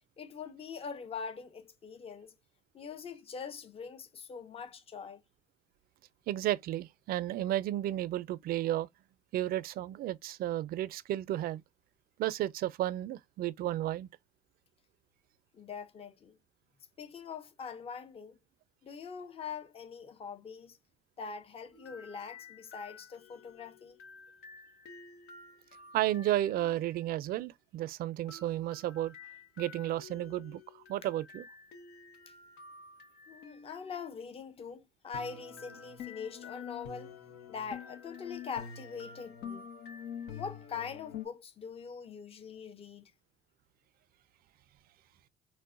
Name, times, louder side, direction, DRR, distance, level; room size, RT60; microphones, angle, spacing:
voice 1, 0.2-2.3 2.7-5.2 15.5-16.4 17.0-18.4 18.8-20.8 21.2-24.0 33.3-37.2 37.5-39.7 40.4-43.1, left 6 dB, 35° left, 0.7 m, -43 dB
voice 2, 6.3-8.9 9.3-11.6 12.2-14.1 25.9-29.1 29.6-31.4, right 13 dB, 60° right, 0.4 m, -33 dB
sound 1, 21.7-27.0 28.3-34.1 35.1-41.3, left 7 dB, 80° left, 0.8 m, -48 dB
4.5 x 2.1 x 2.4 m
cardioid pair, 110°, 17 cm